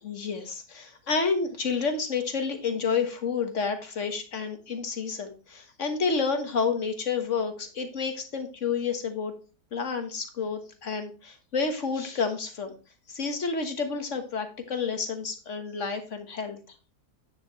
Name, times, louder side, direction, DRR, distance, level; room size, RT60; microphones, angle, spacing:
voice 1, 0.0-9.3 9.7-12.8 13.1-16.7, left 5 dB, 50° left, 6 dB, 1.6 m, -30 dB
9.4 x 6.9 x 3.1 m, 0.32 s
omnidirectional pair, 1.7 m